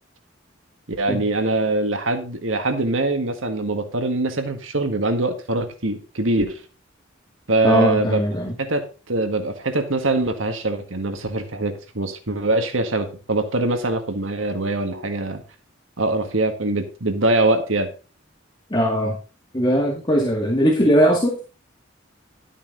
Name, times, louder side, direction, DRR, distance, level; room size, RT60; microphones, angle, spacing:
voice 1, 1.0-6.6 7.5-8.2 8.6-15.4 16.0-17.9, right 2 dB, 85° right, 7 dB, 1.8 m, -23 dB
voice 2, 7.6-8.5 18.7-19.2 19.5-21.4, equal, 25° left, -1 dB, 2.1 m, -19 dB
12.0 x 8.7 x 3.9 m, 0.33 s
head